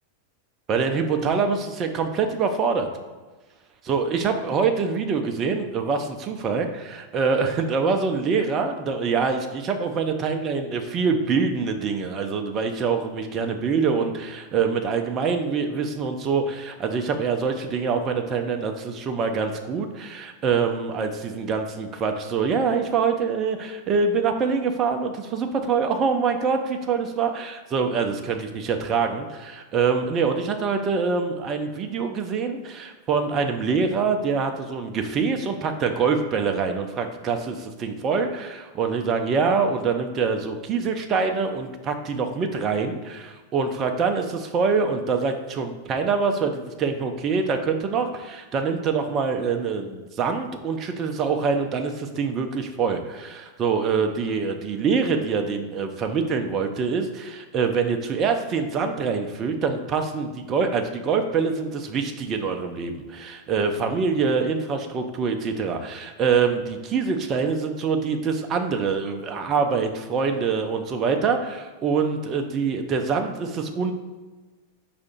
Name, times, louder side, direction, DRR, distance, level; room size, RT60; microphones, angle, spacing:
voice 1, 0.7-2.9 3.8-73.9, right 5 dB, 30° right, 5 dB, 0.4 m, -25 dB
4.7 x 2.5 x 4.2 m, 1.3 s
figure-of-eight pair, 90°, 0 cm